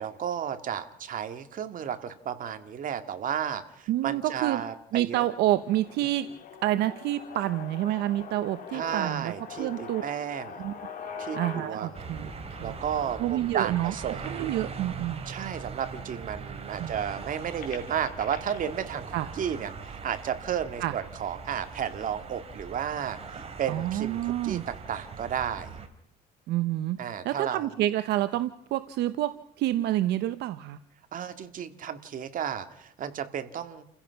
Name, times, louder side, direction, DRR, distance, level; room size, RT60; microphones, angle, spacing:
voice 1, 0.0-5.3 8.7-10.6 11.2-12.1 12.6-14.5 15.3-25.7 27.0-27.7 31.1-33.8, right 8 dB, 55° right, 9 dB, 2.1 m, -33 dB
voice 2, 3.9-4.6 4.9-6.3 6.6-9.3 9.6-10.0 10.6-10.7 11.3-12.3 12.6-12.7 13.2-13.9 14.2-15.2 16.8-16.9 19.1-19.3 20.8-20.9 23.7-24.6 26.5-27.0 27.2-30.8, right 14 dB, 80° right, 12 dB, 0.9 m, -28 dB
sound 1, 5.2-15.2 15.8-15.9 16.2-18.6, left 6 dB, 55° left, 4.3 m, -44 dB
sound 2, 11.9-25.9, right 5 dB, 35° right, 3.1 m, -41 dB
30.0 x 16.0 x 5.8 m, 0.76 s
cardioid pair, 110°, 17 cm